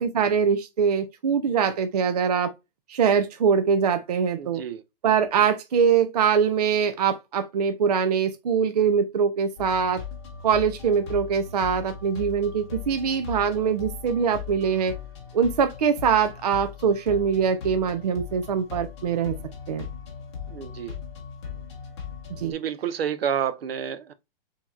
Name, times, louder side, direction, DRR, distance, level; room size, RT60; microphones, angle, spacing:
voice 1, 0.0-2.5 2.9-4.6 5.0-10.0 10.4-14.9 15.3-19.3 19.7-19.9 22.4-22.5, right 6 dB, 40° right, 0.5 m, -23 dB
voice 2, 4.4-4.8 20.5-20.9 22.4-24.1, right 8 dB, 80° right, 0.8 m, -29 dB
sound 1, 9.6-22.5, left 7 dB, 30° left, 1.2 m, -39 dB
7.3 x 2.9 x 2.3 m
hypercardioid pair, 180°, 30 cm